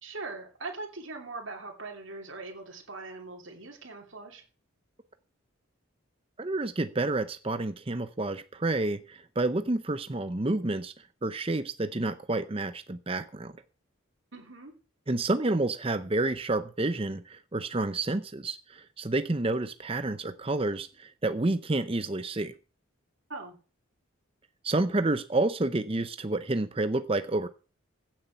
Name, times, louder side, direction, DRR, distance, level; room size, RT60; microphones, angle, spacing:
voice 1, 0.0-4.4 14.3-14.7 23.3-23.6, right 3 dB, 65° right, 1 dB, 2.9 m, -41 dB
voice 2, 6.4-10.9 11.2-13.5 15.1-22.5 24.6-27.5, right 2 dB, 25° right, 10 dB, 0.6 m, -29 dB
16.0 x 7.8 x 5.7 m, 0.36 s
head